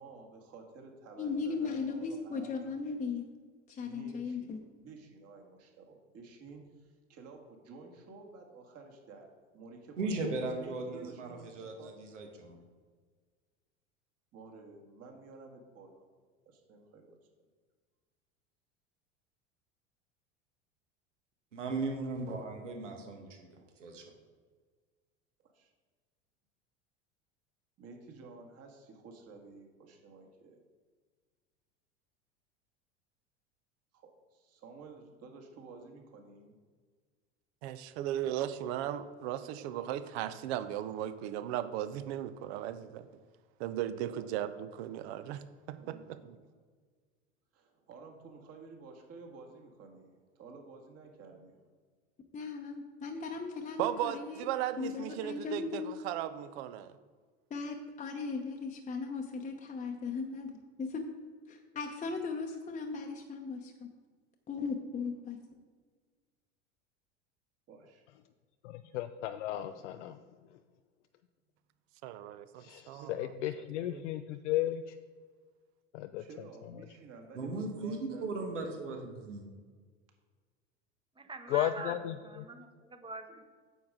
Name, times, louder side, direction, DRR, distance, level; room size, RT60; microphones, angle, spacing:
voice 1, 0.0-2.5 3.8-12.0 14.3-16.1 16.4-17.2 25.4-25.7 27.8-30.6 33.9-36.6 44.1-44.2 45.8-46.2 47.5-51.6 67.7-68.0 76.2-79.2, right 4 dB, 45° right, 2 dB, 1.8 m, -52 dB
voice 2, 1.2-3.2 3.7-4.6 52.3-54.5 54.8-55.9 57.5-60.5 60.8-61.1 61.5-63.9 64.5-65.4, left 4 dB, 20° left, 3 dB, 0.8 m, -37 dB
voice 3, 10.0-12.6 21.5-23.3 23.8-24.0 77.3-79.0 79.3-79.5, right 3 dB, 85° right, 3 dB, 1.4 m, -37 dB
voice 4, 37.6-43.1 43.6-46.3 53.8-56.9 72.0-73.3 73.8-74.0, right 11 dB, 60° right, 12 dB, 0.7 m, -37 dB
voice 5, 68.6-70.2 72.6-75.0 75.9-76.2 76.7-76.9 81.5-82.5, left 12 dB, 75° left, 9 dB, 0.5 m, -34 dB
voice 6, 81.2-82.0 82.2-83.4, right 3 dB, 15° right, 8 dB, 0.8 m, -44 dB
9.1 x 6.3 x 3.7 m, 1.5 s
hypercardioid pair, 85°, 36 cm